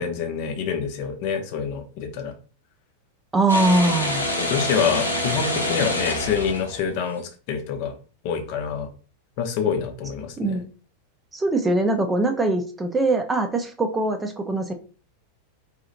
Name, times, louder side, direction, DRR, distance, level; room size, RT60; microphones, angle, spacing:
voice 1, 0.0-2.3 4.4-8.0 8.2-8.9 9.4-10.6, left 6 dB, 45° left, 6 dB, 0.6 m, -26 dB
voice 2, 3.3-4.2 10.4-10.6 11.3-14.7, right 2 dB, 15° right, 6 dB, 0.5 m, -22 dB
sound 1, 3.5-7.1, left 1 dB, 85° left, 0.8 m, -26 dB
4.1 x 2.8 x 2.6 m, 0.38 s
figure-of-eight pair, 90°, 0 cm